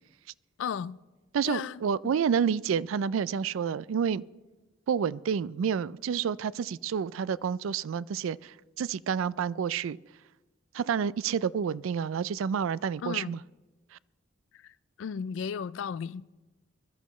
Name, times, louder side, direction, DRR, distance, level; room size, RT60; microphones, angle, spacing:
voice 1, 0.6-1.0 1.5-1.8 13.0-13.4 14.6-14.7 15.0-16.3, left 7 dB, 70° left, 0.3 m, -34 dB
voice 2, 1.3-4.2 4.9-10.0 10.7-13.4, right 7 dB, 85° right, 0.3 m, -29 dB
21.0 x 13.0 x 3.1 m
head